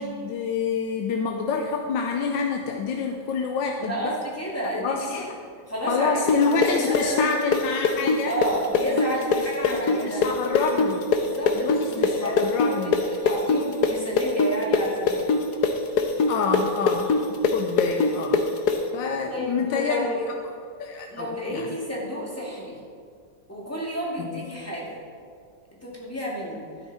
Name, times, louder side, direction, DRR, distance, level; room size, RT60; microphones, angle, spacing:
voice 1, 0.0-4.2 4.7-5.3 5.9-8.3 8.9-9.0 9.6-11.1 11.5-13.0 16.3-18.4 18.9-20.1 20.8-21.8 24.2-24.4, left 5 dB, 80° left, 2 dB, 1.4 m, -27 dB
voice 2, 3.8-5.2 5.7-6.2 6.5-7.3 8.2-10.3 11.2-15.4 17.4-17.6 19.3-20.2 21.1-22.8 23.5-25.0 25.8-26.6, equal, 10° left, -5 dB, 2.3 m, -31 dB
sound 1, 6.3-13.9 14.2-18.8, left 5 dB, 65° left, 1.4 m, -21 dB
12.5 x 11.0 x 4.2 m, 2.2 s
omnidirectional pair, 2.0 m